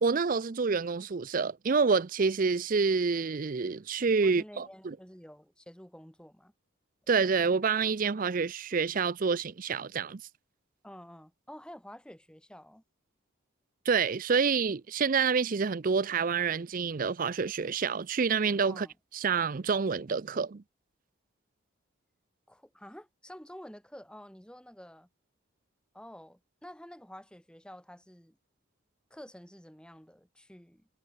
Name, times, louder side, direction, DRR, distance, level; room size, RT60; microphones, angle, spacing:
voice 1, 0.0-5.0 7.1-10.2 13.9-18.9 19.1-20.6, right 5 dB, 40° right, 0.5 m, -28 dB
voice 2, 4.2-6.5 10.8-12.8 18.7-18.9 22.5-25.1 25.9-28.4 29.1-30.9, equal, 5° left, 2.7 m, -49 dB
head